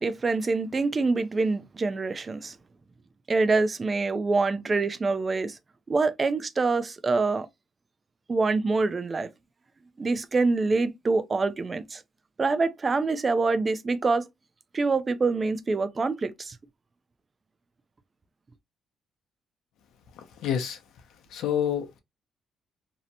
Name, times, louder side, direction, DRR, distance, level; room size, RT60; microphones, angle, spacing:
voice 1, 0.0-2.6 3.3-5.6 5.9-7.5 8.3-9.3 10.0-12.0 12.4-14.3 14.7-16.6, right 3 dB, 30° right, 0.4 m, -25 dB
voice 2, 20.2-20.8 21.3-22.0, left 9 dB, 85° left, 0.6 m, -28 dB
2.7 x 2.1 x 2.7 m
cardioid pair, 90°, 0 cm